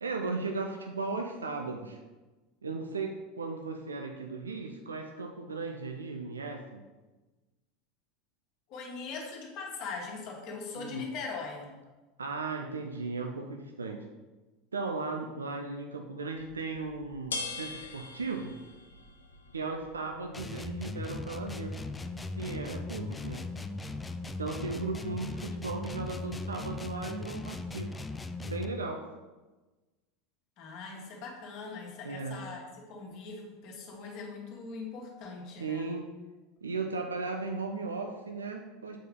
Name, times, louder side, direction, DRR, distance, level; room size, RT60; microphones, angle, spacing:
voice 1, 0.0-2.0 2.6-6.8 10.7-11.1 12.2-14.0 14.7-18.5 19.5-21.7 22.4-23.4 24.4-27.9 28.4-29.1 32.0-32.4 35.6-36.1 36.6-39.0, right 3 dB, 75° right, 4 dB, 0.5 m, -36 dB
voice 2, 8.7-11.7 30.6-36.0, left 4 dB, 45° left, 0 dB, 1.5 m, -41 dB
sound 1, 16.3-27.8, left 3 dB, 75° left, 0.7 m, -47 dB
sound 2, 20.3-28.8, left 3 dB, 15° left, 0.4 m, -38 dB
7.1 x 4.6 x 3.7 m, 1.2 s
figure-of-eight pair, 75°, 0 cm